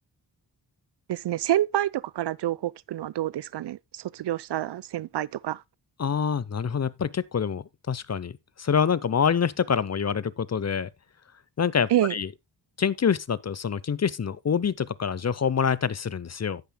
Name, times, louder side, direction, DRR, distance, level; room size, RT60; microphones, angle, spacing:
voice 1, 1.1-5.6 11.9-12.1, right 13 dB, 70° right, 0.6 m, -27 dB
voice 2, 6.0-10.9 11.6-12.3 12.8-16.6, left 7 dB, 40° left, 0.7 m, -26 dB
17.0 x 5.8 x 2.2 m
cardioid pair, 50°, 43 cm